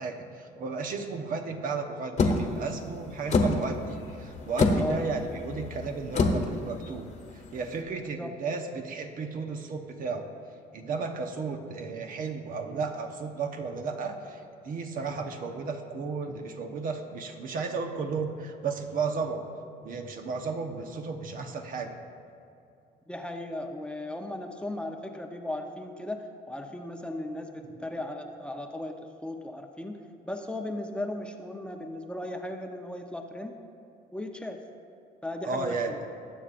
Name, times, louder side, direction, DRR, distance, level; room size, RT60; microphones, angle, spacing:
voice 1, 0.0-10.3 10.7-19.5 19.8-22.0 35.4-35.9, right 4 dB, 55° right, 4 dB, 1.0 m, -34 dB
sound 1, 2.2-7.8, left 3 dB, 45° left, 1.2 m, -28 dB
voice 2, 8.0-8.3 23.1-30.0 30.2-33.6 34.1-34.6 35.2-36.0, left 1 dB, 5° left, 3 dB, 0.7 m, -36 dB
20.5 x 8.3 x 2.5 m, 2.5 s
cardioid pair, 110°, 17 cm